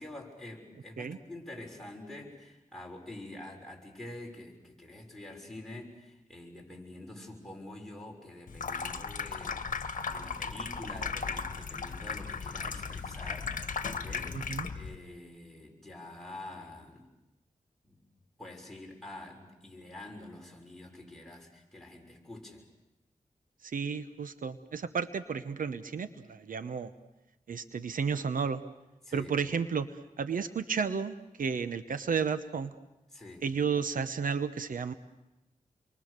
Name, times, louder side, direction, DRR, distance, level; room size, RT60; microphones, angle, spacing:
voice 1, 0.0-14.4 14.7-17.1 17.8-18.0 18.4-22.7 29.0-29.3 33.1-33.4, left 1 dB, 5° left, -1 dB, 6.2 m, -47 dB
Water tap faucet / Sink (filling or washing), 8.5-15.0, left 5 dB, 70° left, 1.4 m, -36 dB
voice 2, 14.3-14.7 23.6-26.9 27.5-28.6 29.1-32.7 33.4-34.9, right 6 dB, 80° right, 11 dB, 1.0 m, -32 dB
29.0 x 23.0 x 6.7 m, 0.97 s
wide cardioid pair, 70°, 14 cm